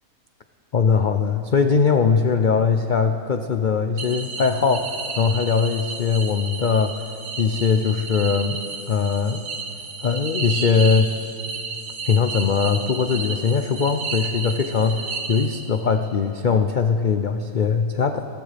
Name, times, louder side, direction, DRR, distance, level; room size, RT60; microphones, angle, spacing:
voice 1, 0.7-8.6 8.9-9.4 10.0-11.1 12.0-18.3, left 5 dB, 85° left, 7 dB, 0.4 m, -21 dB
sound 1, 4.0-15.9, right 4 dB, 55° right, 1.3 m, -32 dB
21.0 x 16.5 x 3.4 m, 2.5 s
omnidirectional pair, 1.6 m